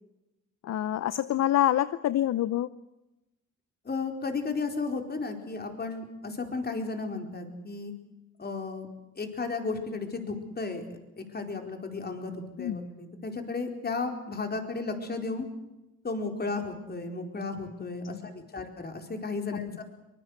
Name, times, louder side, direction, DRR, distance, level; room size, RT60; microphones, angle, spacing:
voice 1, 0.6-2.7 12.6-12.8 18.1-18.3, left 12 dB, 60° left, 16 dB, 0.7 m, -26 dB
voice 2, 3.8-7.9 8.4-8.9 9.2-15.5 16.0-19.8, left 3 dB, 30° left, 5 dB, 4.5 m, -34 dB
23.5 x 20.5 x 8.1 m, 0.95 s
cardioid pair, 90°, 30 cm